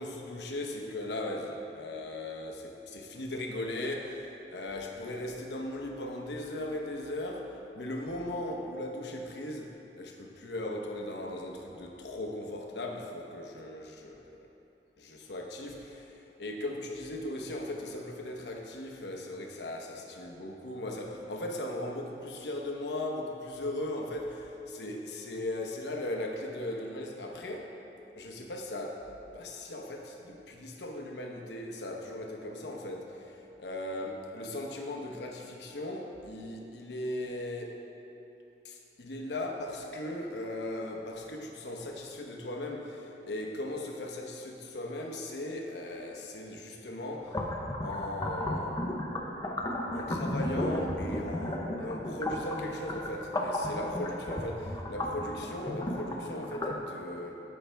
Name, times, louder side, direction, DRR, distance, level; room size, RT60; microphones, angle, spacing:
voice 1, 0.0-14.5 15.0-27.7 28.2-29.1 29.3-33.2 33.6-37.8 38.6-47.4 47.8-48.9 49.9-57.3, left 1 dB, 75° left, 2 dB, 0.9 m, -38 dB
sound 1, 47.2-56.8, left 1 dB, 20° left, 0.7 m, -34 dB
14.0 x 5.7 x 3.4 m, 2.9 s
head